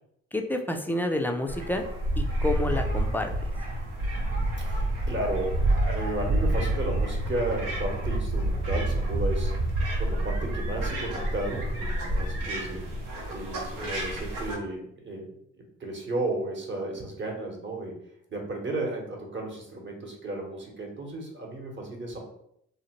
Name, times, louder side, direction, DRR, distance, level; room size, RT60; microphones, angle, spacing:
voice 1, 0.3-1.8 2.2-3.3, left 1 dB, 5° left, 4 dB, 0.3 m, -29 dB
sound 1, 1.5-14.6, right 1 dB, 80° right, 0.8 m, -28 dB
voice 2, 4.6-9.5 10.0-12.8 13.3-15.3 15.6-17.9 18.3-22.2, right 2 dB, 35° right, 0 dB, 0.9 m, -34 dB
2.7 x 2.1 x 2.9 m, 0.73 s
supercardioid pair, 60°, 34 cm